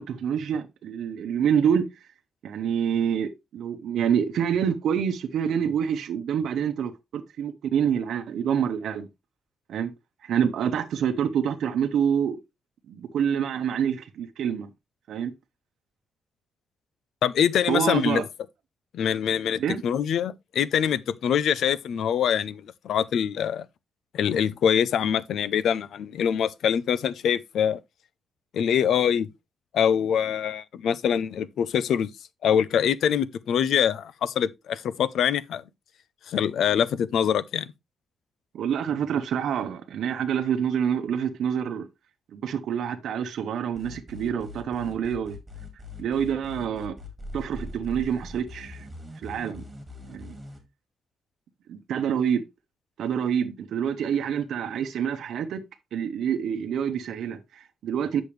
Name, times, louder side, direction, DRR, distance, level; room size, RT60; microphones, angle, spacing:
voice 1, 0.0-2.1 2.4-9.1 9.7-9.9 10.2-12.4 12.9-14.7 15.1-15.3 17.7-18.2 19.5-19.8 38.5-41.8 42.3-45.4 46.0-46.9 47.3-48.9 49.2-49.7 50.1-50.4 51.7-52.4 53.0-55.6 55.9-58.2, right 8 dB, 80° right, 0.8 m, -27 dB
voice 2, 17.2-18.2 18.9-23.7 24.1-27.8 28.5-29.3 29.7-32.1 32.4-35.6 36.3-37.7, left 8 dB, 75° left, 0.5 m, -24 dB
sound 1, 43.7-50.6, left 2 dB, 15° right, 2.1 m, -41 dB
8.6 x 6.2 x 3.2 m
wide cardioid pair, 165°, 0 cm